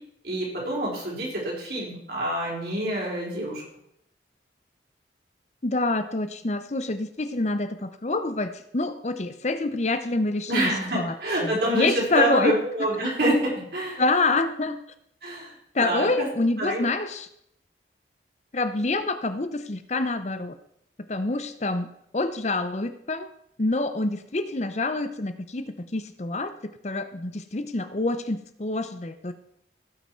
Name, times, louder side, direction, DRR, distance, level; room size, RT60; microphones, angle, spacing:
voice 1, 0.2-3.6 10.5-14.0 15.2-15.6 15.8-16.3 16.6-16.9, right 1 dB, 60° right, -4 dB, 4.2 m, -27 dB
voice 2, 5.6-11.1 11.4-12.6 14.0-14.8 15.7-17.3 18.5-20.6 21.1-21.9 22.1-23.3 23.6-29.3, left 2 dB, 40° left, 10 dB, 0.7 m, -27 dB
16.5 x 5.9 x 4.4 m, 0.74 s
head